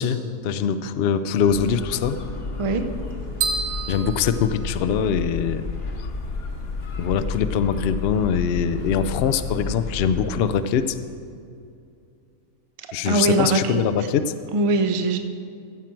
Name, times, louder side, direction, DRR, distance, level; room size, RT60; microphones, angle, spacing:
voice 1, 0.0-2.2 3.9-5.6 7.0-11.0 12.9-14.3, left 7 dB, 80° left, 11 dB, 0.5 m, -23 dB
sound 1, 1.4-10.4, left 4 dB, 45° left, 1.1 m, -31 dB
sound 2, 3.4-5.3, right 5 dB, 90° right, 1.4 m, -29 dB
voice 2, 13.1-13.8 14.5-15.2, right 3 dB, 55° right, 7 dB, 0.3 m, -21 dB
15.0 x 7.4 x 4.5 m, 2.5 s
omnidirectional pair, 1.6 m